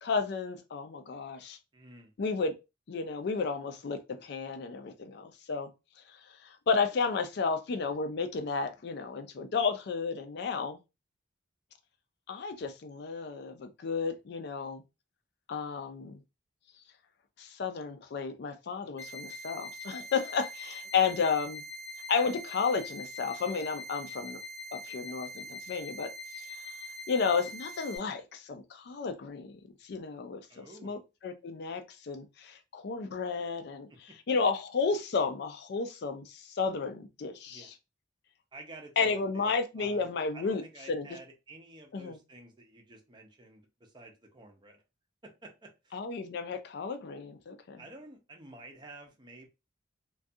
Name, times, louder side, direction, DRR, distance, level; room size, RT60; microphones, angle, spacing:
voice 1, 0.0-1.6 2.2-2.5 2.9-5.7 6.1-6.2 6.4-10.8 12.3-14.8 15.5-16.2 17.4-21.6 22.1-24.4 24.7-26.1 26.4-26.5 27.1-33.9 34.3-37.7 39.0-40.6 40.9-41.1 41.9-42.2 45.9-47.8, left 5 dB, 60° left, 0.4 m, -32 dB
voice 2, 1.7-2.1 21.0-21.1 30.5-31.0 33.9-34.2 37.5-37.7 38.5-44.8 45.2-46.0 47.8-49.5, right 2 dB, 25° right, 0.5 m, -51 dB
sound 1, 19.0-28.0, left 2 dB, 10° left, 0.9 m, -43 dB
2.3 x 2.3 x 2.6 m
head